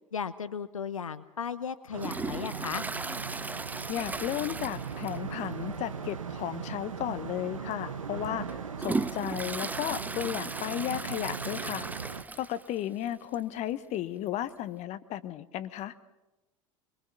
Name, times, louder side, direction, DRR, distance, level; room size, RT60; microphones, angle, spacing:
voice 1, 0.1-2.9, left 6 dB, 85° left, 13 dB, 0.7 m, -35 dB
sound 1, 1.9-12.2, right 6 dB, 85° right, 1.4 m, -39 dB
Toilet flush, 2.0-5.4 5.7-5.8 6.2-6.3 7.2-7.3 7.8-12.7 13.1-13.2 13.3-13.4 14.5-14.6, right 3 dB, 10° right, 0.7 m, -36 dB
voice 2, 3.9-11.9 12.4-15.9, left 12 dB, 45° left, 13 dB, 1.1 m, -34 dB
24.0 x 23.0 x 5.9 m, 1.0 s
figure-of-eight pair, 80°, 17 cm